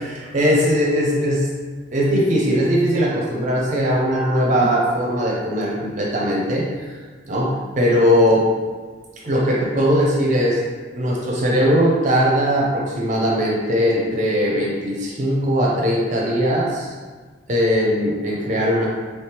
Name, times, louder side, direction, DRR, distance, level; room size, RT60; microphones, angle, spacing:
voice 1, 0.0-1.5 1.9-7.0 7.2-8.4 9.2-10.6 10.9-16.9 17.5-18.9, equal, 45° right, -3 dB, 0.5 m, -19 dB
3.1 x 2.9 x 3.3 m, 1.4 s
head